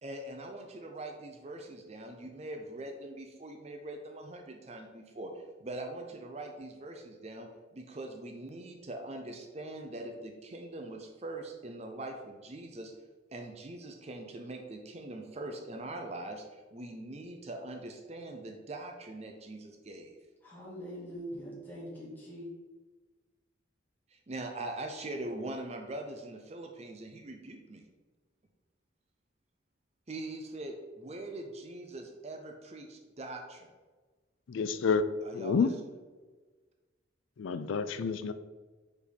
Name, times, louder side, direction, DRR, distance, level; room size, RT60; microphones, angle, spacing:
voice 1, 0.0-12.9 13.3-20.1 24.1-27.8 30.1-33.7 35.2-35.7, right 2 dB, 35° right, 0.5 m, -42 dB
voice 2, 20.4-22.5, equal, 10° left, 1.8 m, -43 dB
voice 3, 34.5-35.0 35.3-35.7 37.4-38.3, left 5 dB, 80° left, 0.4 m, -29 dB
5.0 x 4.3 x 5.1 m
head